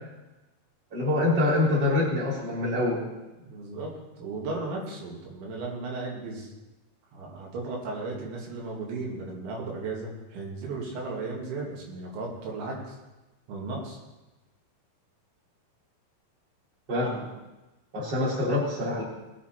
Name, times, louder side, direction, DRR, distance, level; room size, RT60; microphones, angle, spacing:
voice 1, 0.9-3.0 16.9-17.3 17.9-19.0, left 2 dB, 25° right, -5 dB, 3.6 m, -25 dB
voice 2, 3.4-6.5 7.1-13.0 13.5-14.0, right 3 dB, 90° right, -2 dB, 4.8 m, -35 dB
19.5 x 8.8 x 4.5 m, 1.1 s
omnidirectional pair, 5.1 m